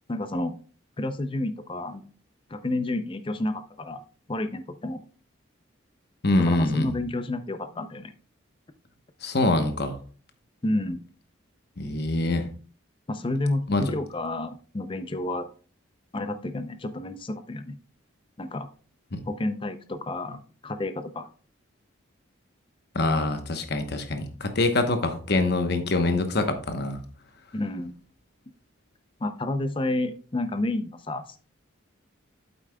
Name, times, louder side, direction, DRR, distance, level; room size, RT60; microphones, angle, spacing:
voice 1, 0.1-0.5 1.0-2.0 2.5-4.0 4.3-5.0 6.4-8.1 10.6-11.0 13.1-15.5 16.1-17.8 18.4-18.7 19.3-21.3 27.5-27.9 29.2-31.4, left 2 dB, 25° left, 10 dB, 0.5 m, -30 dB
voice 2, 6.2-7.0 9.2-10.0 11.8-12.5 13.7-13.8 19.1-19.2 22.9-27.0, left 2 dB, 50° left, 7 dB, 1.0 m, -24 dB
8.4 x 8.3 x 2.3 m, 0.41 s
head